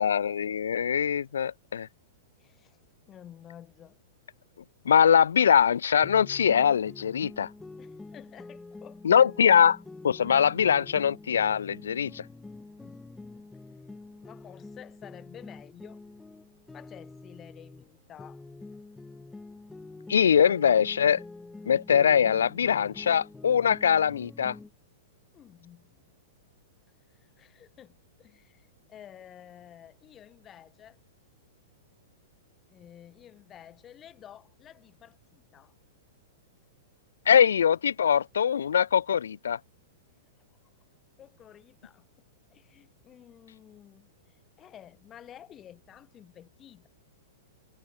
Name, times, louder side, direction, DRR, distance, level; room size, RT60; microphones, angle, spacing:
voice 1, 0.0-1.9 4.8-7.5 9.0-9.8 10.0-12.2 20.1-21.2 21.6-24.6 37.3-39.6, left 8 dB, 80° left, 1.2 m, -22 dB
voice 2, 2.4-2.8 3.1-4.0 7.8-9.0 12.8-13.0 14.2-16.0 16.7-18.4 25.3-26.1 27.1-31.0 32.7-35.7 41.2-42.1 42.5-44.1 44.6-46.9, left 10 dB, 25° left, 6.5 m, -51 dB
sound 1, 6.0-17.9 18.2-24.7, left 3 dB, 10° left, 2.0 m, -46 dB
hypercardioid pair, 115°, 0 cm